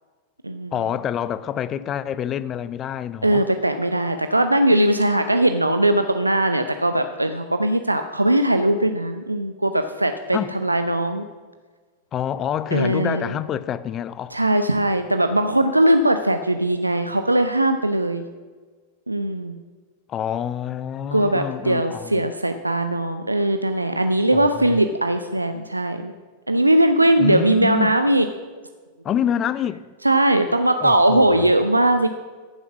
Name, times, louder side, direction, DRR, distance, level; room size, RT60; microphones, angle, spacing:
voice 1, 0.7-3.5 10.3-10.6 12.1-14.4 20.1-22.3 24.3-24.8 27.2-28.0 29.0-29.8 30.8-31.5, left 9 dB, 30° left, 0.5 m, -27 dB
voice 2, 3.2-11.2 12.7-13.3 14.3-18.2 19.1-19.6 21.1-26.1 26.5-28.3 30.0-32.1, right 1 dB, 85° right, 0.6 m, -20 dB
14.0 x 7.1 x 6.1 m
figure-of-eight pair, 90°, 0 cm